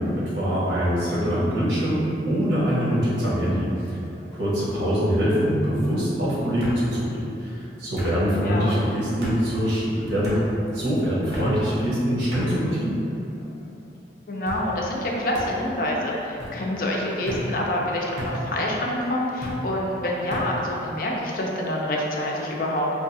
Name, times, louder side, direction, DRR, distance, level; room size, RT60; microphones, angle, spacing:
voice 1, 0.0-4.0 4.3-10.5 10.7-13.0, equal, 85° right, -8 dB, 1.1 m, -24 dB
sound 1, 3.9-4.5 5.5-5.6 6.6-6.8 8.0-8.2 9.2-9.4 10.2-10.4 11.3-11.5 12.3-12.5 13.2-13.7 14.5-14.6 15.3-15.5 16.4-16.6 17.3-17.5 18.2-18.4 19.4-19.6 20.3-20.5, equal, 70° right, 0.8 m, -34 dB
voice 2, 14.3-22.9, left 1 dB, 50° left, -2 dB, 0.5 m, -27 dB
4.6 x 2.3 x 2.6 m, 2.8 s
head